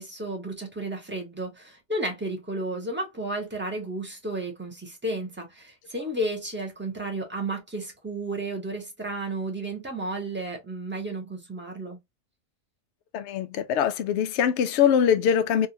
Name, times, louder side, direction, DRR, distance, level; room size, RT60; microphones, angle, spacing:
voice 1, 0.0-12.0, right 2 dB, 10° right, 1.0 m, -32 dB
voice 2, 13.1-15.7, left 8 dB, 65° left, 0.7 m, -23 dB
3.6 x 2.6 x 2.8 m
omnidirectional pair, 1.5 m